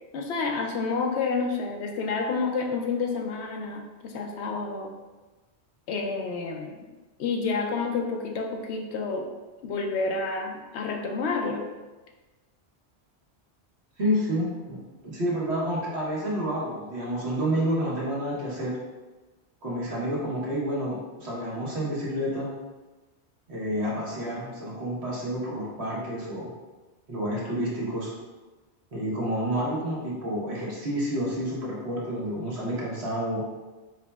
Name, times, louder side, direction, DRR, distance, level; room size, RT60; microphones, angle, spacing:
voice 1, 0.1-4.9 5.9-6.8 7.2-9.3 9.6-11.6, left 4 dB, 75° left, 2 dB, 0.9 m, -29 dB
voice 2, 14.0-18.8 19.6-22.5 23.5-26.5 27.1-28.1 28.9-33.4, equal, 70° right, -6 dB, 1.5 m, -29 dB
4.8 x 4.1 x 2.3 m, 1.2 s
omnidirectional pair, 1.1 m